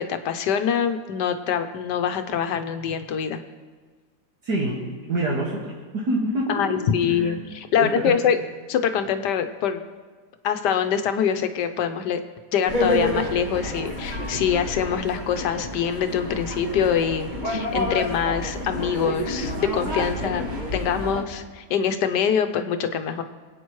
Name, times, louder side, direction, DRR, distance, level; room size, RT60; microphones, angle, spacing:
voice 1, 0.0-3.4 6.5-8.4 8.7-9.8 10.4-12.2 12.5-20.5 20.7-23.2, left 8 dB, 80° left, 8 dB, 1.3 m, -24 dB
voice 2, 4.5-4.8 5.1-7.4 7.7-8.2, right 1 dB, 70° right, -6 dB, 2.4 m, -26 dB
sound 1, 12.7-21.2, left 1 dB, 30° right, 1.6 m, -29 dB
25.0 x 8.8 x 3.1 m, 1.4 s
omnidirectional pair, 1.8 m